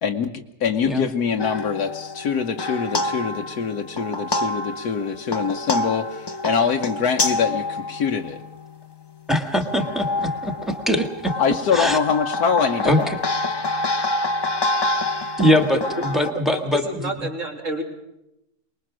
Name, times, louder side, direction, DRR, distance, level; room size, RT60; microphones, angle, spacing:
voice 1, 0.0-8.4 11.4-13.2, left 6 dB, 75° left, 3 dB, 1.5 m, -24 dB
sound 1, 1.4-8.8 9.5-16.3, left 2 dB, 40° left, 0.3 m, -27 dB
voice 2, 9.3-12.0 12.8-13.2 15.4-17.3, equal, ahead, 6 dB, 1.7 m, -22 dB
voice 3, 16.0-17.8, equal, 50° right, 2 dB, 3.3 m, -30 dB
23.5 x 21.0 x 6.2 m, 0.88 s
omnidirectional pair, 1.7 m